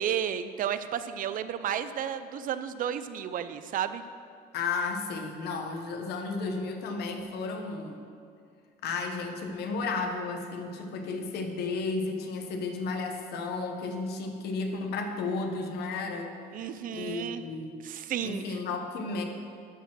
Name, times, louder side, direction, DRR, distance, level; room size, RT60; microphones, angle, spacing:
voice 1, 0.0-4.0 16.5-17.4 17.8-18.6, right 9 dB, 55° right, 12 dB, 0.5 m, -32 dB
voice 2, 4.5-8.0 8.8-16.3 16.9-17.8 18.2-19.2, left 4 dB, 75° left, 4 dB, 1.1 m, -33 dB
12.0 x 4.4 x 6.2 m, 2.4 s
cardioid pair, 110°, 17 cm